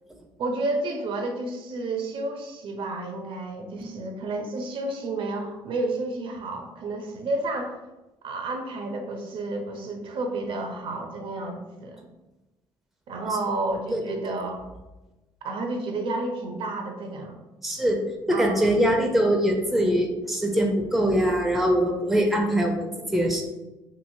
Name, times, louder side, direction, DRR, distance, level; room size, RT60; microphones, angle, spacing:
voice 1, 0.4-7.8 8.2-12.1 13.1-14.6 15.4-17.4 18.3-18.8, right 2 dB, 65° right, 4 dB, 0.5 m, -31 dB
voice 2, 13.9-14.3 17.6-18.0 18.3-23.4, equal, ahead, 2 dB, 0.5 m, -23 dB
2.9 x 2.6 x 2.6 m, 1.1 s
cardioid pair, 80°, 10 cm